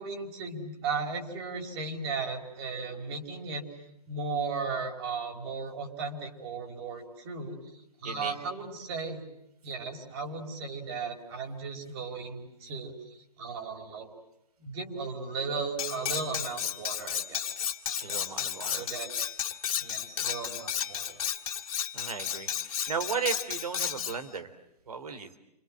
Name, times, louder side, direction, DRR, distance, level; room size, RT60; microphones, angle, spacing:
voice 1, 0.0-3.6 4.1-9.2 9.6-14.1 14.6-17.6 18.1-19.1 19.8-21.2, right 4 dB, 40° right, 3 dB, 5.4 m, -36 dB
voice 2, 8.0-8.4 18.0-18.9 21.9-24.5 24.9-25.4, right 5 dB, 65° right, 9 dB, 3.7 m, -35 dB
Cutlery silverware, 15.8-24.2, left 9 dB, 60° left, 2.6 m, -33 dB
29.0 x 26.5 x 7.7 m, 0.84 s
hypercardioid pair, 135°, 20 cm